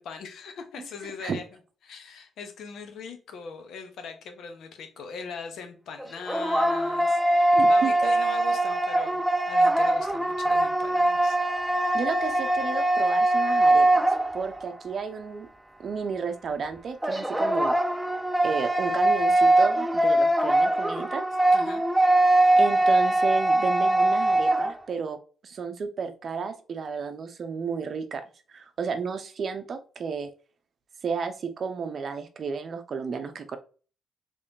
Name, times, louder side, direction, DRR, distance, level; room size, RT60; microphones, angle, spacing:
voice 1, 0.0-1.5 1.8-9.2 9.5-11.4 11.8-12.0 21.5-21.8, left 5 dB, 70° left, 6 dB, 0.9 m, -40 dB
sound 1, 6.0-14.7 17.0-24.8, right 1 dB, 5° right, 0.4 m, -22 dB
voice 2, 7.5-7.9 11.9-14.0 14.3-15.5 15.8-17.8 18.4-21.2 22.6-25.2 25.4-28.2 28.5-30.3 31.0-33.6, right 5 dB, 50° right, 8 dB, 0.6 m, -32 dB
3.5 x 3.2 x 2.7 m, 0.37 s
cardioid pair, 90°, 0 cm